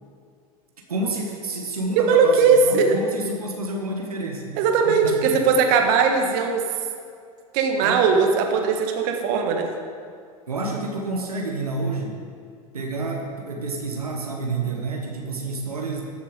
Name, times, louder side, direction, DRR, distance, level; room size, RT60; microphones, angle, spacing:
voice 1, 0.9-4.5 4.8-5.4 7.8-8.1 10.5-12.1 12.7-16.0, right 2 dB, 90° right, 0 dB, 1.5 m, -29 dB
voice 2, 2.0-3.0 4.6-6.6 7.5-9.7, right 5 dB, 50° right, 3 dB, 1.6 m, -19 dB
13.5 x 7.3 x 5.3 m, 2.2 s
hypercardioid pair, 95°, 19 cm